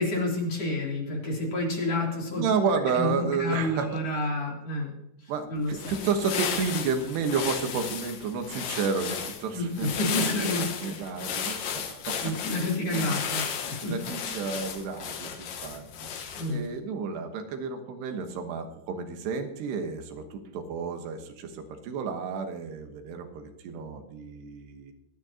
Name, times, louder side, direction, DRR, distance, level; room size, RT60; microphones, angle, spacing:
voice 1, 0.0-2.4 2.9-3.1 3.4-4.9 5.5-5.9 9.5-9.7 10.0-10.9 12.2-13.9 16.3-16.6, left 1 dB, 40° left, -2 dB, 4.0 m, -29 dB
voice 2, 2.3-4.3 5.3-13.2 13.8-16.1 16.5-24.9, right 5 dB, 90° right, 6 dB, 3.4 m, -31 dB
sound 1, 5.6-16.7, left 7 dB, 65° left, 2.7 m, -34 dB
25.0 x 9.3 x 2.9 m, 0.84 s
omnidirectional pair, 4.6 m